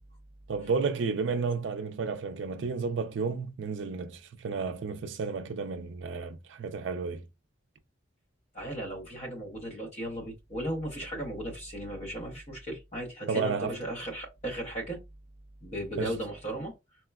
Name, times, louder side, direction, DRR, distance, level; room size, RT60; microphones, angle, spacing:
voice 1, 0.5-7.2 13.3-13.8 16.0-16.1, right 4 dB, 65° right, 0.4 m, -32 dB
voice 2, 8.5-15.0 15.6-16.8, right 1 dB, 35° left, 0.7 m, -36 dB
4.2 x 2.1 x 2.2 m
head